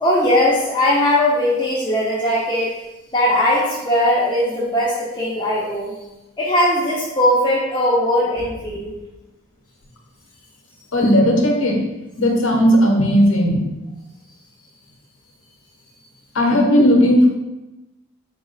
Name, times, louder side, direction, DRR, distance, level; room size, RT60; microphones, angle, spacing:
voice 1, 0.0-2.7 3.1-5.9 6.4-8.9, left 1 dB, 20° left, -7 dB, 0.5 m, -19 dB
voice 2, 10.9-11.8 12.2-13.7 16.3-17.3, equal, 60° left, 0 dB, 0.7 m, -15 dB
4.0 x 2.4 x 3.7 m, 1.0 s
head